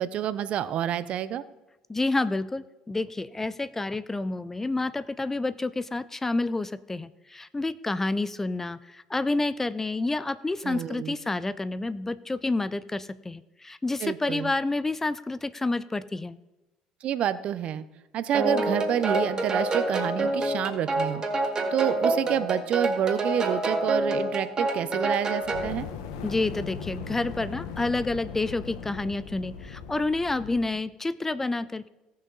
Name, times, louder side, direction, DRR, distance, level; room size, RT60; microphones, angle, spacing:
voice 1, 0.0-1.4 10.6-11.1 14.0-14.5 17.0-17.8 18.1-21.2 21.7-25.9, right 10 dB, 55° right, 14 dB, 0.6 m, -28 dB
voice 2, 1.9-16.4 26.2-31.9, left 2 dB, 15° left, 16 dB, 0.5 m, -29 dB
sound 1, 18.3-25.7, right 2 dB, 30° right, 2.0 m, -27 dB
Fire, 25.4-30.7, left 6 dB, 90° left, 1.1 m, -39 dB
17.5 x 6.4 x 3.9 m, 1.0 s
supercardioid pair, 90°, 2 cm